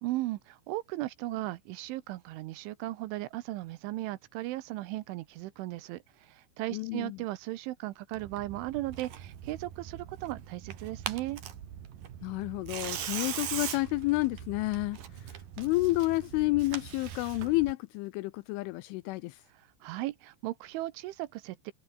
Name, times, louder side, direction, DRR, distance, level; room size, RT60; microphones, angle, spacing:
voice 1, 0.0-11.4 19.6-21.7, right 17 dB, 75° right, 3.1 m, -37 dB
voice 2, 6.7-7.2 12.2-19.4, left 21 dB, 85° left, 2.9 m, -30 dB
Tearing, 8.1-17.7, right 9 dB, 50° right, 3.2 m, -41 dB
omnidirectional pair, 6.0 m